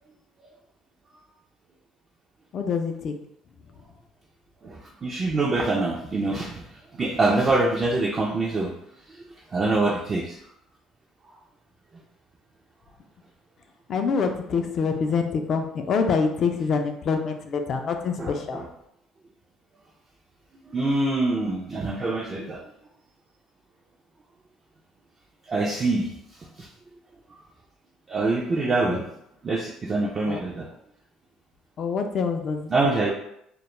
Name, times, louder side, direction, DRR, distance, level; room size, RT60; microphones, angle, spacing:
voice 1, 2.5-3.1 13.9-18.6 28.6-29.0 30.2-30.4 31.8-33.0, left 5 dB, 50° left, 5 dB, 0.3 m, -26 dB
voice 2, 4.6-6.6 7.0-8.7 9.1-9.2 9.5-10.4 18.2-18.7 20.7-22.6 25.5-26.1 26.6-26.7 28.1-29.0 29.4-30.7 32.7-33.1, right 2 dB, 35° right, -2 dB, 0.4 m, -25 dB
2.1 x 2.0 x 3.0 m, 0.77 s
supercardioid pair, 90°, 0 cm